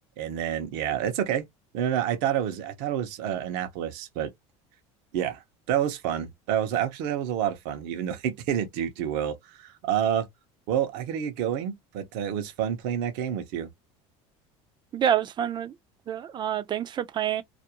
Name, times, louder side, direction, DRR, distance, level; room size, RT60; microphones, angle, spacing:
voice 1, 0.2-1.5 1.7-4.3 5.1-5.4 5.7-10.3 10.7-13.7, right 10 dB, 75° right, 0.7 m, -28 dB
voice 2, 14.9-15.7 16.1-17.4, right 9 dB, 35° right, 0.4 m, -27 dB
2.5 x 2.0 x 2.8 m
supercardioid pair, 110°, 14 cm